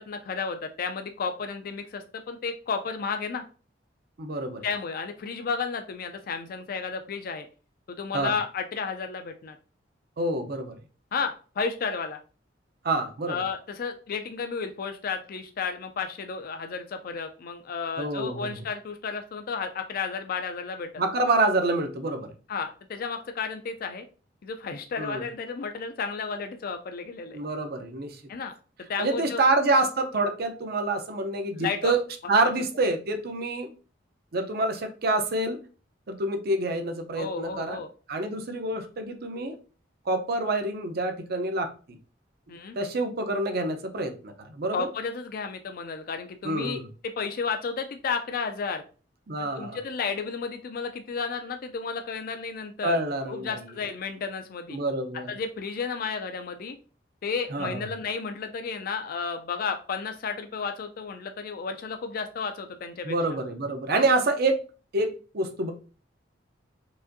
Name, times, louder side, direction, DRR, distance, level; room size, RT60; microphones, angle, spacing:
voice 1, 0.0-3.4 4.6-7.5 7.9-9.6 11.1-12.2 13.3-21.0 22.5-24.1 24.4-27.4 28.3-28.5 28.9-29.4 31.6-31.9 37.2-37.9 42.5-42.8 44.7-46.8 47.2-48.8 49.4-53.0 53.3-54.8 55.3-56.8 57.2-63.2, left 5 dB, 50° left, 0.4 m, -32 dB
voice 2, 4.2-4.6 8.1-8.3 10.2-10.7 12.8-13.4 18.0-18.5 21.0-22.3 25.0-25.2 27.3-28.2 29.0-32.0 32.3-33.7 34.3-35.6 36.1-37.8 38.1-39.6 40.1-41.7 42.8-44.9 46.4-46.9 49.3-49.8 52.8-53.6 54.7-55.3 57.5-57.9 63.0-64.6 64.9-65.7, right 2 dB, 55° right, 0.6 m, -27 dB
4.8 x 2.5 x 2.6 m
head